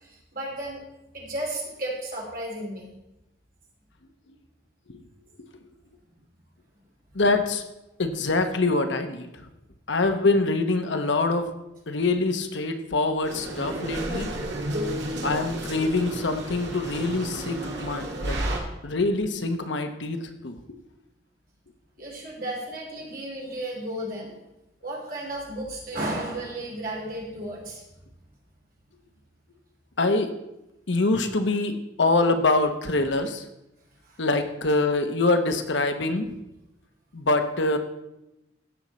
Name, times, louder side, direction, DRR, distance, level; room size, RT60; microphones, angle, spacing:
voice 1, 0.3-0.8 1.1-2.9 22.0-24.3 24.8-27.8, right 1 dB, 45° right, -2 dB, 3.3 m, -33 dB
voice 2, 7.1-7.6 8.0-9.5 9.9-11.5 11.9-14.3 15.2-18.4 18.8-20.2 20.4-20.6 30.0-30.3 30.9-33.4 34.2-36.3 37.1-37.8, left 2 dB, 70° left, 7 dB, 0.9 m, -24 dB
sound 1, 13.2-18.6, right 1 dB, 65° right, 2.0 m, -32 dB
16.0 x 6.3 x 4.2 m, 0.93 s
head